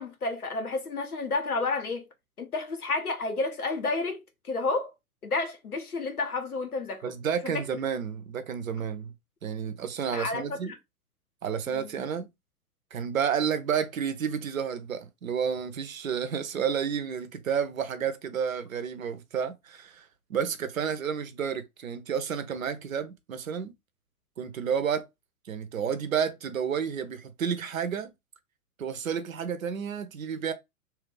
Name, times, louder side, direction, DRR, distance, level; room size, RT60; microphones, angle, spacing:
voice 1, 0.0-2.1 2.4-4.9 5.2-7.0 7.4-7.6 10.1-10.8 11.7-11.9, left 3 dB, 80° left, 1.0 m, -31 dB
voice 2, 7.0-9.1 9.4-10.7 11.4-12.3 12.9-23.7 24.4-25.1 25.4-28.1 28.8-30.5, right 7 dB, 65° right, 0.7 m, -31 dB
3.0 x 2.4 x 3.2 m
figure-of-eight pair, 110°, 44 cm